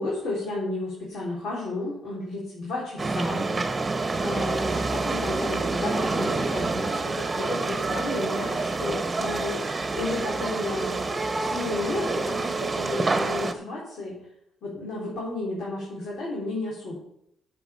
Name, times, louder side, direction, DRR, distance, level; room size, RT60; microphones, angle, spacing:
voice 1, 0.0-3.5 4.2-9.6 9.9-11.0 11.4-14.2 14.6-17.0, left 2 dB, 70° left, -5 dB, 4.1 m, -32 dB
sound 1, 3.0-13.5, right 3 dB, 25° right, 1.3 m, -27 dB
9.1 x 7.0 x 7.3 m, 0.77 s
cardioid pair, 90°, 0 cm